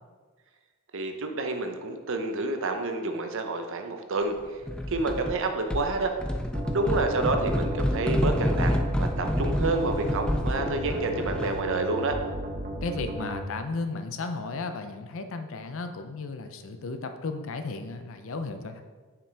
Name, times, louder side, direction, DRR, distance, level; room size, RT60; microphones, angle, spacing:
voice 1, 0.9-4.4 4.9-6.1 6.7-12.2, right 3 dB, 65° right, 5 dB, 0.7 m, -29 dB
sound 1, 4.7-5.4 5.7-11.7, equal, 5° left, 0.3 m, -28 dB
sound 2, 6.5-13.4, equal, 40° right, 1.0 m, -35 dB
voice 2, 12.8-18.8, left 3 dB, 65° left, 8 dB, 0.6 m, -34 dB
7.0 x 5.9 x 3.4 m, 1.5 s
head